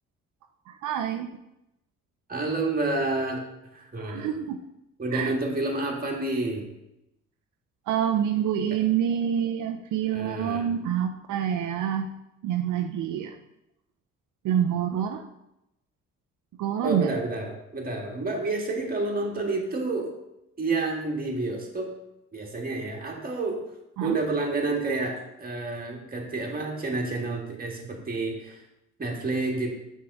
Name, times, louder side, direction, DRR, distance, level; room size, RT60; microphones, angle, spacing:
voice 1, 0.7-1.3 4.0-4.6 5.1-5.3 7.9-12.1 12.4-13.4 14.4-15.3 16.6-17.1 24.0-24.2, right 9 dB, 80° right, 6 dB, 0.6 m, -27 dB
voice 2, 2.3-3.4 3.7-4.4 5.0-6.7 10.1-10.7 16.8-20.1 20.6-21.9 22.3-23.6 24.0-28.6 29.0-29.7, right 3 dB, 30° right, 0 dB, 1.7 m, -29 dB
6.2 x 3.7 x 6.0 m, 0.88 s
cardioid pair, 90°, 30 cm